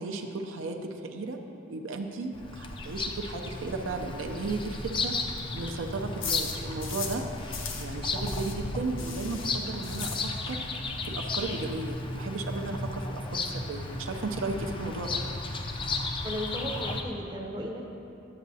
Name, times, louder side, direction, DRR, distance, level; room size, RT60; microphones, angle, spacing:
voice 1, 0.0-1.4 1.7-15.2, right 3 dB, 75° right, 4 dB, 0.5 m, -35 dB
Bird vocalization bird call bird song, 2.3-17.0, left 3 dB, 25° left, 0.4 m, -34 dB
sound 1, 4.4-7.2 7.5-10.7 11.0-11.1 11.4-11.5 11.7-12.1, left 6 dB, 70° left, 0.7 m, -39 dB
voice 2, 16.2-17.8, equal, 20° right, 0 dB, 0.6 m, -35 dB
10.5 x 8.2 x 2.7 m, 2.8 s
head